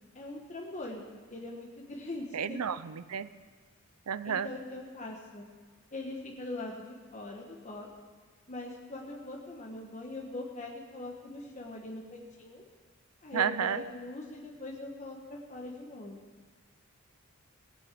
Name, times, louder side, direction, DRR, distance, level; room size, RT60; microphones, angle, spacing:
voice 1, 0.1-2.6 4.2-5.5 5.9-7.9 8.5-12.6 13.2-16.2, left 2 dB, 35° left, -1 dB, 1.3 m, -42 dB
voice 2, 2.3-3.3 4.1-4.5 13.3-13.8, right 7 dB, 85° right, 14 dB, 0.6 m, -31 dB
18.0 x 6.3 x 8.4 m, 1.5 s
head